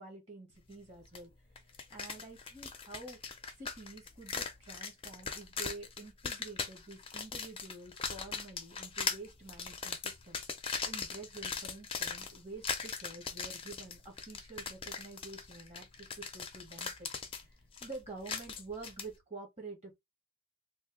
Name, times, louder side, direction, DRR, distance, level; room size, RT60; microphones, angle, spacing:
voice 1, 0.0-1.3 1.9-3.3 3.6-10.4 10.8-17.1 17.3-19.9, right 3 dB, 30° right, 1.5 m, -48 dB
sound 1, 1.2-1.3 1.6-19.1, left 5 dB, 25° left, 0.6 m, -40 dB
3.3 x 2.5 x 3.5 m
head